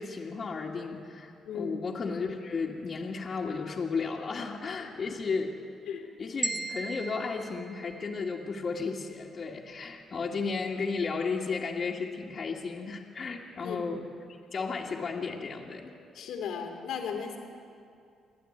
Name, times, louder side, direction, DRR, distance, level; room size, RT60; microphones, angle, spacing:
voice 1, 0.0-5.5 6.2-14.1 14.5-15.9, left 4 dB, 45° left, -4 dB, 2.1 m, -34 dB
voice 2, 1.4-1.8 5.9-6.1 13.6-13.8 16.1-17.4, left 7 dB, 85° left, 0 dB, 2.9 m, -36 dB
sound 1, 6.4-8.6, right 2 dB, 25° right, 1.6 m, -37 dB
28.5 x 11.5 x 9.7 m, 2.4 s
cardioid pair, 90°, 0 cm